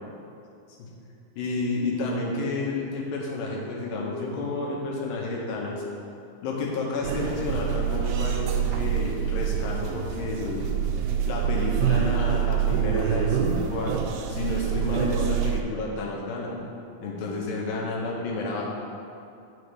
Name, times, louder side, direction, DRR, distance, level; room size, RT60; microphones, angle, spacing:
voice 1, 1.4-5.8 6.4-10.7 11.3-13.9 14.3-16.6 17.0-18.6, left 2 dB, 90° left, -2 dB, 2.8 m, -30 dB
sound 1, 7.0-15.6, right 9 dB, 85° right, 1.8 m, -26 dB
11.0 x 4.9 x 3.4 m, 2.6 s
omnidirectional pair, 4.0 m